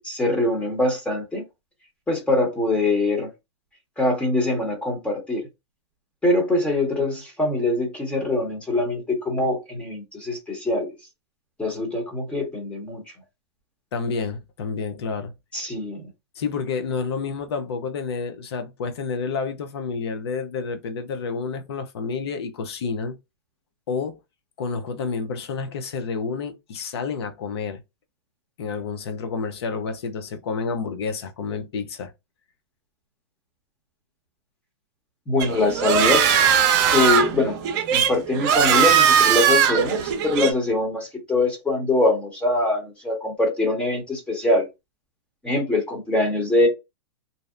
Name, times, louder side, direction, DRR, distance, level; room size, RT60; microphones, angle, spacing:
voice 1, 0.0-1.4 2.1-3.3 4.0-5.4 6.2-10.9 11.6-13.0 15.5-16.1 35.3-36.4 36.7-37.6 37.9-44.6 45.4-46.7, left 2 dB, 10° left, 0.9 m, -23 dB
voice 2, 13.9-15.3 16.4-23.2 23.9-24.2 24.6-27.8 28.6-32.1, left 5 dB, 70° left, 0.6 m, -29 dB
sound 1, 35.4-40.5, right 8 dB, 45° right, 0.6 m, -19 dB
2.7 x 2.0 x 2.4 m
hypercardioid pair, 130°, 14 cm